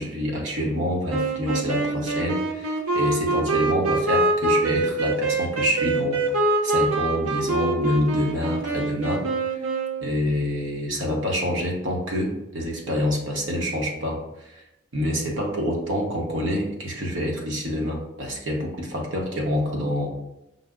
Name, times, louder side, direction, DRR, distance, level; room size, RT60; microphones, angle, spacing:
voice 1, 0.0-6.2 6.6-9.3 10.0-14.6 14.9-20.2, left 1 dB, 65° right, -1 dB, 1.0 m, -27 dB
sound 1, 1.1-10.3, right 2 dB, 90° right, 0.7 m, -24 dB
5.4 x 2.0 x 3.6 m, 0.88 s
head